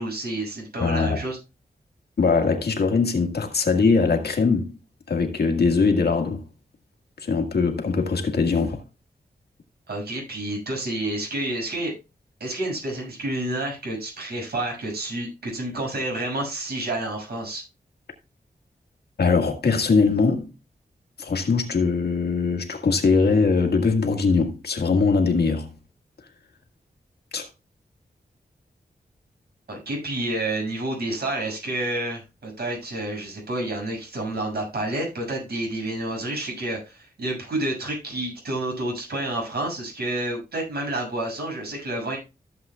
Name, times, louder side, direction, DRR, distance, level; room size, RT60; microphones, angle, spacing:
voice 1, 0.0-1.4 9.9-11.9 12.4-17.6 29.7-42.2, right 1 dB, 80° right, 6.8 m, -29 dB
voice 2, 0.8-1.2 2.2-4.7 5.1-6.4 7.2-8.8 19.2-20.5 21.2-25.7 27.3-27.5, left 4 dB, 80° left, 1.8 m, -21 dB
14.5 x 7.7 x 2.4 m
wide cardioid pair, 130°, 16 cm